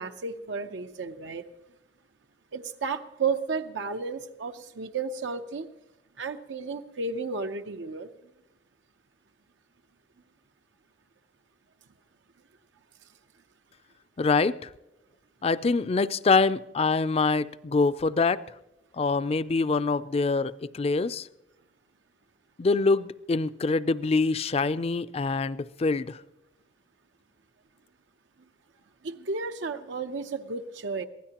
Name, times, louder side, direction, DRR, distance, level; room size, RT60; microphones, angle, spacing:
voice 1, 0.0-1.4 2.5-5.7 6.2-8.1 29.0-31.0, right 4 dB, 85° right, 7 dB, 0.7 m, -33 dB
voice 2, 14.2-14.7 15.4-18.4 18.9-21.3 22.6-26.2, left 4 dB, 35° left, 15 dB, 0.4 m, -25 dB
23.0 x 16.0 x 2.9 m, 0.94 s
head